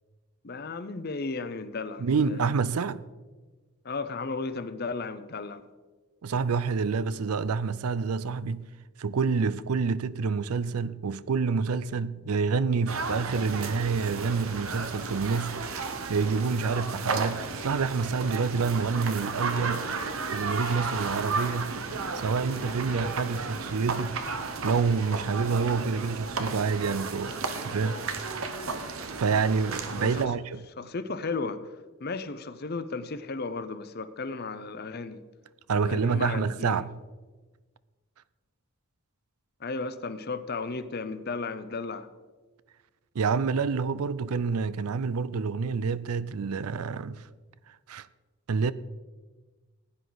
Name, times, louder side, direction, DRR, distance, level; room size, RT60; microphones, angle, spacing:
voice 1, 0.4-2.4 3.8-5.6 30.0-30.2 30.8-31.6 32.0-35.2 35.7-36.8 39.6-42.1, left 3 dB, 45° left, 0.7 m, -34 dB
voice 2, 2.0-3.0 6.2-8.7 9.0-15.6 16.1-19.9 20.3-21.7 22.1-24.2 24.6-27.3 27.6-28.0 29.2-30.6 35.7-36.9 43.1-47.2 47.9-48.1 48.5-48.7, right 5 dB, 85° right, 0.5 m, -28 dB
sound 1, 12.9-30.3, right 4 dB, 70° right, 1.0 m, -33 dB
15.5 x 9.9 x 4.0 m
head